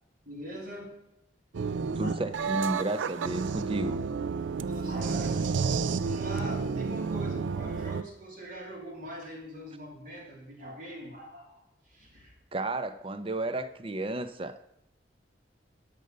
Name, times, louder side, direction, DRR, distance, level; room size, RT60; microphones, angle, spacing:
voice 1, 0.2-1.0 2.0-2.1 4.7-12.4, equal, 45° right, -1 dB, 3.1 m, -42 dB
sound 1, 1.5-8.0, right 5 dB, 80° right, 0.4 m, -31 dB
voice 2, 1.9-4.0 12.5-14.6, right 2 dB, 30° right, 11 dB, 0.6 m, -33 dB
10.5 x 6.7 x 6.5 m, 0.84 s
head